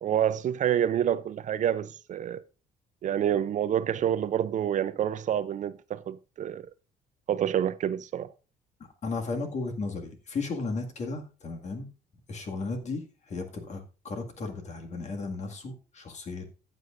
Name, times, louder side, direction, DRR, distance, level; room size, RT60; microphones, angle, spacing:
voice 1, 0.0-2.4 3.0-6.7 7.3-8.3, right 10 dB, 45° right, 0.5 m, -28 dB
voice 2, 9.0-11.9 12.3-16.4, left 3 dB, 45° left, 2.0 m, -35 dB
14.0 x 8.2 x 2.5 m
cardioid pair, 110°, 17 cm